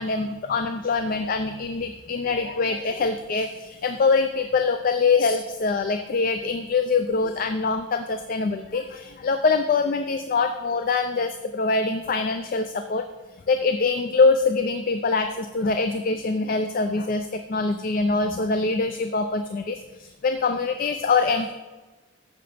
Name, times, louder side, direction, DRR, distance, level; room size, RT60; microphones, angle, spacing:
voice 1, 0.0-13.1 13.5-21.5, left 4 dB, 45° left, 7 dB, 0.4 m, -24 dB
8.8 x 6.7 x 3.4 m, 1.2 s
head